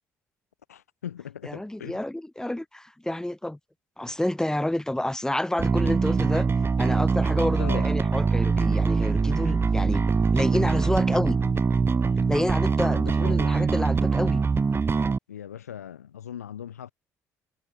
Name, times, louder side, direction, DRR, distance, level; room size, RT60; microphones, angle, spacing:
voice 1, 0.7-2.0 7.6-7.9 12.8-13.7 15.3-16.9, left 9 dB, 80° left, 4.6 m, -39 dB
voice 2, 1.4-3.6 4.0-6.5 6.8-10.0 10.3-11.4 12.3-14.4, left 1 dB, 5° left, 5.0 m, -29 dB
Bass guitar, 5.6-15.2, right 5 dB, 30° right, 1.2 m, -23 dB
figure-of-eight pair, 45°, 8 cm